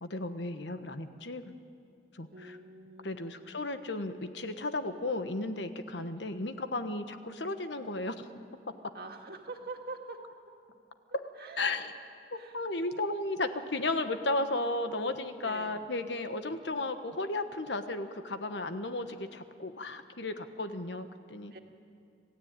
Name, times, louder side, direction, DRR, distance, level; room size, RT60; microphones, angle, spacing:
voice 1, 0.0-1.5 2.1-2.6 3.0-8.3 11.1-11.3 11.6-11.9 12.3-21.5, left 2 dB, 80° left, 9 dB, 1.3 m, -34 dB
voice 2, 2.3-3.4 6.0-6.2 8.9-10.2 11.4-11.6 12.3-12.6 15.4-15.8 21.5-21.6, right 3 dB, 55° right, 3 dB, 2.0 m, -45 dB
27.0 x 15.5 x 9.0 m, 2.4 s
head